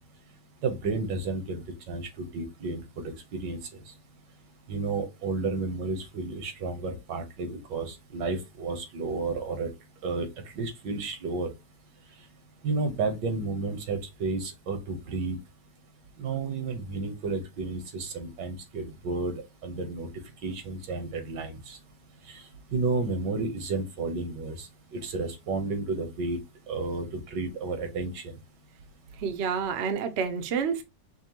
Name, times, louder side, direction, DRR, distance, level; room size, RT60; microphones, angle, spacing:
voice 1, 0.6-3.6 4.7-9.7 10.0-11.5 12.6-15.4 16.2-20.1 20.4-21.8 22.3-22.4 22.7-26.4 26.7-28.4, right 3 dB, 80° right, 1.7 m, -32 dB
voice 2, 29.2-30.8, right 6 dB, 60° right, 0.7 m, -29 dB
5.8 x 2.2 x 2.9 m
omnidirectional pair, 1.9 m